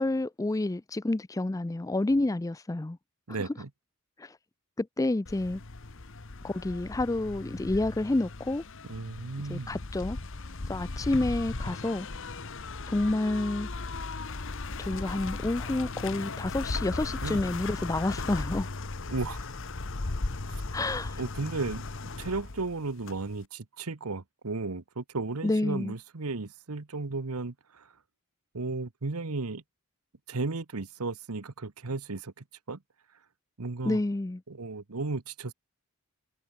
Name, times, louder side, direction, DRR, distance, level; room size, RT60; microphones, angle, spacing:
voice 1, 0.0-3.0 4.2-4.3 4.8-5.6 6.4-8.6 9.5-10.2 10.7-12.1 12.9-13.7 14.8-18.7 20.7-21.2 25.4-25.9 33.8-34.4, left 2 dB, 15° left, 0.4 m, -29 dB
voice 2, 3.3-3.7 8.9-9.8 17.2-17.5 19.1-19.4 20.5-20.6 21.2-27.9 28.5-29.6 30.3-32.8 33.6-34.0 34.5-35.5, right 3 dB, 80° right, 1.1 m, -35 dB
sound 1, 5.3-23.4, left 3 dB, 60° left, 1.2 m, -37 dB
head